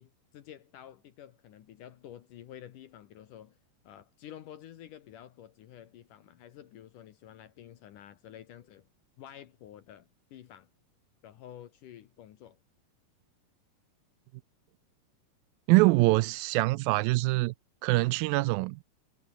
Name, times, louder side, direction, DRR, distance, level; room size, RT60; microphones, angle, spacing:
voice 1, 0.0-3.6 3.8-8.9 9.2-10.7 11.2-12.6, left 11 dB, 65° left, 2.7 m, -50 dB
voice 2, 15.7-17.5 17.8-18.8, right 22 dB, 85° right, 2.2 m, -24 dB
omnidirectional pair, 4.2 m